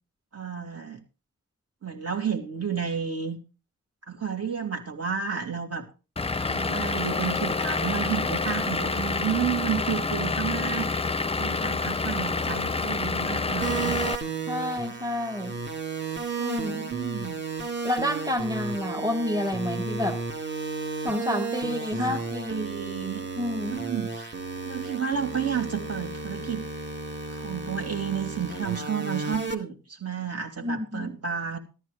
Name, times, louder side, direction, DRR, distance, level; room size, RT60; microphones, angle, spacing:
voice 1, 0.3-1.0 1.8-3.4 4.1-5.9 6.5-10.9 11.4-14.0 16.6-17.4 21.6-22.2 22.5-23.2 23.7-24.4 24.6-26.6 27.3-31.6, right 7 dB, 50° right, 2 dB, 2.9 m, -31 dB
Vehicle / Engine, 6.2-14.2, left 3 dB, 20° left, 0.6 m, -28 dB
sound 1, 13.6-29.5, right 4 dB, 35° right, 2.1 m, -33 dB
voice 2, 14.5-15.5 16.4-16.9 17.8-20.2 21.0-22.7 23.4-23.8 30.6-31.1, left 1 dB, 10° right, 4 dB, 1.4 m, -29 dB
13.5 x 13.0 x 3.4 m, 0.33 s
wide cardioid pair, 100°, 31 cm